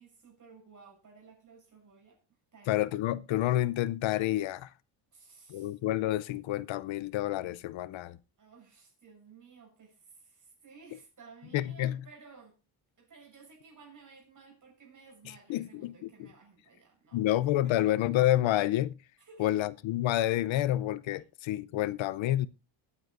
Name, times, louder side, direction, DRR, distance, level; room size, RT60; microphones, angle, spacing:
voice 1, 0.0-2.2 2.5-2.8 5.1-5.8 8.4-12.6 13.0-17.4 17.6-17.9 19.2-19.6, right 5 dB, 35° right, 7.1 m, -55 dB
voice 2, 2.7-4.7 5.5-8.2 11.5-12.0 15.5-15.9 16.2-16.3 17.1-19.0 19.4-22.5, left 14 dB, 65° left, 0.6 m, -29 dB
22.0 x 9.6 x 2.5 m
cardioid pair, 130°, 50 cm